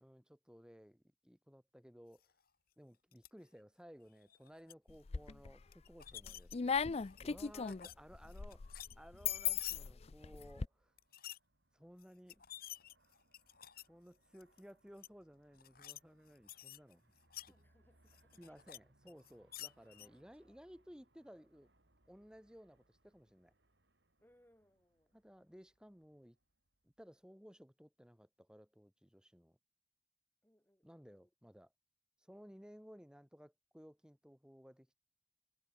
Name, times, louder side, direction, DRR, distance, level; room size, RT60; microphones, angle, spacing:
voice 1, 0.0-2.2 2.8-6.5 6.8-10.9 11.7-12.4 13.9-17.1 18.4-21.7 22.1-23.5 25.1-26.4 26.8-29.6 30.8-31.7 32.2-34.9, equal, 5° right, 3.2 m, -58 dB
sound 1, 3.1-3.3 4.2-4.7 5.7-6.6 7.0-7.9 8.2-9.8 11.0-11.4 12.0-12.1 12.3-13.9 14.3-14.6 15.0-15.1 15.5-16.0 16.3-17.5 18.1-18.8 19.1-20.1, left 12 dB, 55° left, 2.8 m, -51 dB
sound 2, 4.9-5.6 6.0-10.7, left 6 dB, 35° left, 0.4 m, -38 dB
Aircraft, 10.0-27.3, right 1 dB, 65° right, 5.1 m, -75 dB
voice 2, 17.5-18.6 20.0-20.6 24.2-25.2 30.4-31.3, equal, 10° left, 7.9 m, -72 dB
head